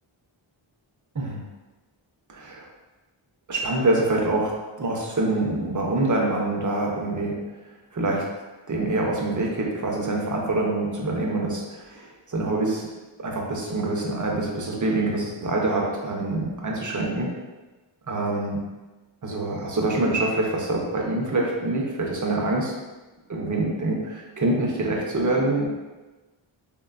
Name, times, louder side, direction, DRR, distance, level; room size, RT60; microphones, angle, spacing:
voice 1, 2.3-2.7 3.5-4.5 4.8-7.3 7.9-8.2 8.7-12.9 13.2-17.3 18.1-18.6 19.2-22.7 23.3-25.7, right 2 dB, 40° right, -1 dB, 0.5 m, -25 dB
3.2 x 2.2 x 2.3 m, 1.2 s
wide cardioid pair, 75°, 49 cm